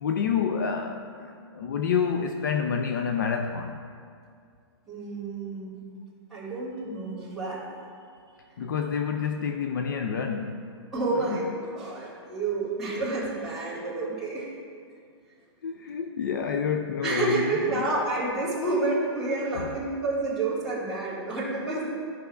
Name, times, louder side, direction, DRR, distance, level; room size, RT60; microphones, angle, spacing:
voice 1, 0.0-3.8 8.6-10.7 11.3-11.4 15.6-17.9, left 6 dB, 45° left, 5 dB, 0.4 m, -28 dB
voice 2, 4.9-5.8 6.3-7.6 10.9-14.5 17.0-21.9, right 3 dB, ahead, -13 dB, 1.6 m, -29 dB
14.0 x 5.5 x 2.3 m, 2.3 s
hypercardioid pair, 180°, 15 cm